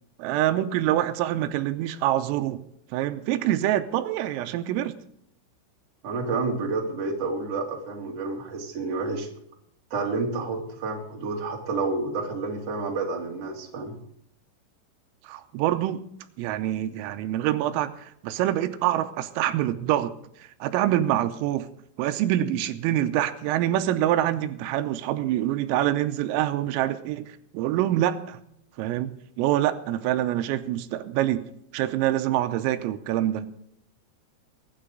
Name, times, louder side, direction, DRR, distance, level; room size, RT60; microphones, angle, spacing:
voice 1, 0.2-2.6 2.9-5.0 15.3-16.0 16.4-20.1 20.4-21.7 22.0-27.3 27.5-28.4 28.8-31.4 31.7-33.5, right 13 dB, 90° right, 10 dB, 3.4 m, -25 dB
voice 2, 6.0-9.3 9.9-13.9, right 3 dB, 40° right, 0 dB, 2.6 m, -29 dB
22.5 x 9.7 x 3.9 m, 0.72 s
omnidirectional pair, 5.9 m